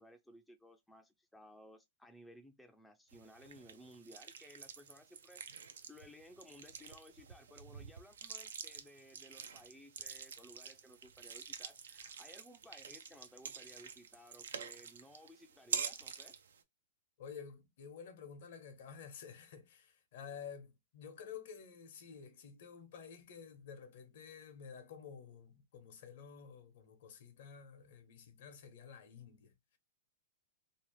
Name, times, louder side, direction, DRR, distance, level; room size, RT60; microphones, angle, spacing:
voice 1, 0.0-16.3, equal, 5° left, 0.4 m, -58 dB
sound 1, 3.1-16.6, right 7 dB, 85° right, 0.4 m, -47 dB
voice 2, 17.2-29.8, left 7 dB, 70° left, 0.8 m, -51 dB
2.7 x 2.0 x 3.0 m
hypercardioid pair, 125°, 0 cm